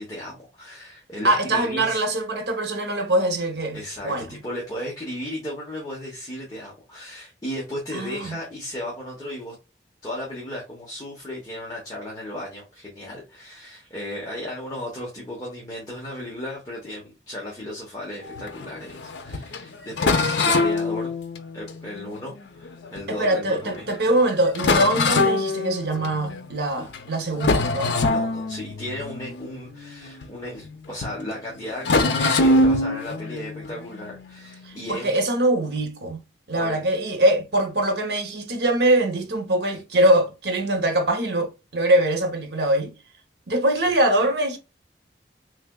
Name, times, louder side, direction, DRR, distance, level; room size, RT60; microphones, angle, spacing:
voice 1, 0.0-2.0 3.7-9.5 10.0-21.1 21.5-23.8 28.0-35.1 36.5-36.8 43.8-43.9, left 1 dB, 20° left, 1.0 m, -35 dB
voice 2, 1.2-4.4 7.9-8.4 23.1-28.0 34.6-36.2 36.5-42.9 43.5-44.6, right 1 dB, 70° right, 0.8 m, -23 dB
sound 1, 18.2-23.2 23.8-23.9 24.2-24.3 24.6-26.5 26.9-27.1 27.4-30.8 31.0-31.2 31.8-34.8, left 2 dB, 90° left, 0.5 m, -24 dB
3.4 x 3.3 x 2.3 m
head